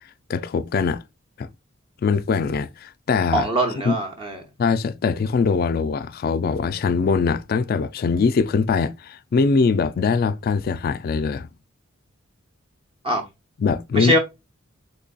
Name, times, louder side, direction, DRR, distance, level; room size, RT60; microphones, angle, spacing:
voice 1, 0.3-1.0 1.4-1.5 2.0-3.5 3.8-4.0 4.6-11.5 13.6-14.1, left 5 dB, 50° left, 0.3 m, -22 dB
voice 2, 3.3-4.4 13.0-13.2 13.9-14.2, right 1 dB, 25° right, 0.7 m, -22 dB
3.9 x 3.2 x 2.2 m
head